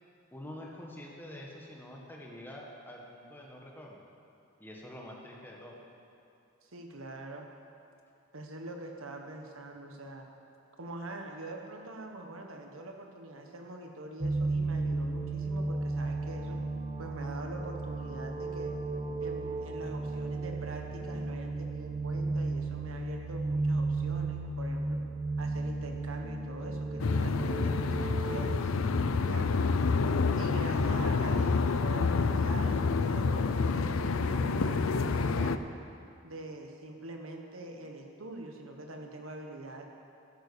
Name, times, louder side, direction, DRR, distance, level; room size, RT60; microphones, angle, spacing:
voice 1, 0.3-4.0 4.6-5.8, left 1 dB, 10° left, -1 dB, 1.7 m, -46 dB
voice 2, 6.6-7.5 8.3-10.3 10.8-16.6 17.0-18.8 19.2-25.0 25.4-28.7 29.2-29.5 30.3-35.6 36.2-39.8, right 2 dB, 85° right, 3 dB, 1.4 m, -44 dB
sound 1, 14.2-28.5, right 3 dB, 30° right, 0.6 m, -34 dB
sound 2, 27.0-35.6, left 4 dB, 85° left, 0.5 m, -28 dB
12.5 x 11.0 x 7.0 m, 2.6 s
head